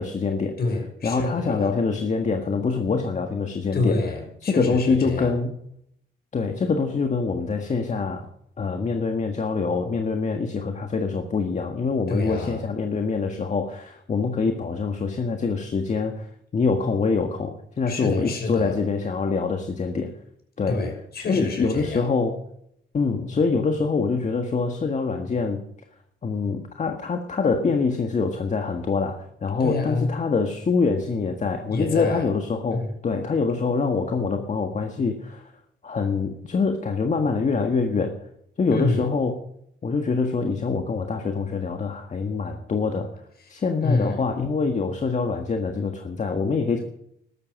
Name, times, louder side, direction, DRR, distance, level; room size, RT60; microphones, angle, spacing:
voice 1, 0.0-0.6 1.0-4.0 4.5-5.5 6.3-8.3 8.6-20.1 20.6-20.8 21.2-22.4 22.9-25.6 26.2-35.5 35.8-38.2 38.6-39.4 39.8-43.1 43.5-46.8, left 4 dB, 35° left, 5 dB, 1.6 m, -25 dB
voice 2, 0.6-1.7 3.7-5.4 12.1-12.6 17.9-18.7 20.7-22.1 29.6-30.1 31.7-32.3 32.7-32.9 38.7-39.1 43.4-43.5 43.8-44.2, left 3 dB, 55° left, 3 dB, 6.1 m, -27 dB
13.5 x 12.5 x 6.4 m, 0.74 s
cardioid pair, 90°, 20 cm